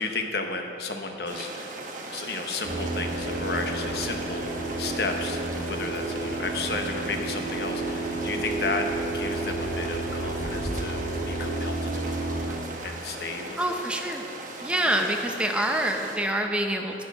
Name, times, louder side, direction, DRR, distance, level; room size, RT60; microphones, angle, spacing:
voice 1, 0.0-1.8 2.1-11.0 11.3-12.6 12.8-13.8 14.9-15.2, left 3 dB, 60° left, 4 dB, 1.0 m, -33 dB
sound 1, 1.3-16.2, right 2 dB, 45° right, 1.0 m, -38 dB
sound 2, 2.6-12.5, right 2 dB, 65° right, 1.9 m, -31 dB
voice 2, 13.6-14.2 14.6-17.0, right 1 dB, 5° right, 2 dB, 0.7 m, -26 dB
10.5 x 8.8 x 5.4 m, 2.8 s
head